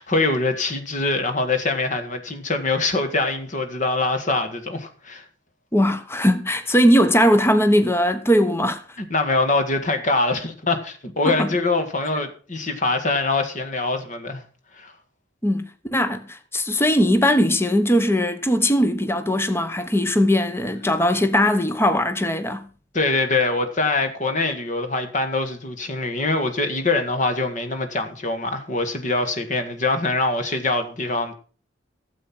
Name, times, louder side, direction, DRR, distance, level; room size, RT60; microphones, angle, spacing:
voice 1, 0.0-5.3 9.0-14.4 14.8-14.9 22.9-31.3, left 3 dB, 40° left, 1.8 m, -23 dB
voice 2, 5.7-8.8 11.2-11.5 15.4-22.6, equal, 15° left, 0.9 m, -19 dB
12.5 x 7.8 x 6.0 m
head